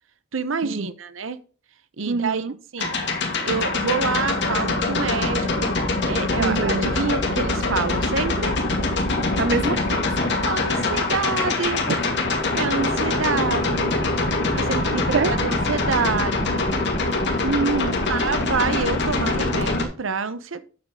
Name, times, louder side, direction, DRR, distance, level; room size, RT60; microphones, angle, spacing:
voice 1, 0.3-1.4 2.0-2.5 2.7-2.9 3.4-5.8 6.1-8.6 10.4-11.8 12.5-16.6 18.1-20.6, right 4 dB, 85° right, 13 dB, 0.9 m, -27 dB
voice 2, 2.1-2.5 6.4-6.9 9.4-10.1 11.9-12.0 15.1-15.3 17.4-18.0, right 4 dB, 60° right, 11 dB, 0.6 m, -24 dB
sound 1, 2.8-19.8, left 2 dB, 65° left, 2.2 m, -23 dB
8.3 x 7.6 x 3.7 m, 0.39 s
head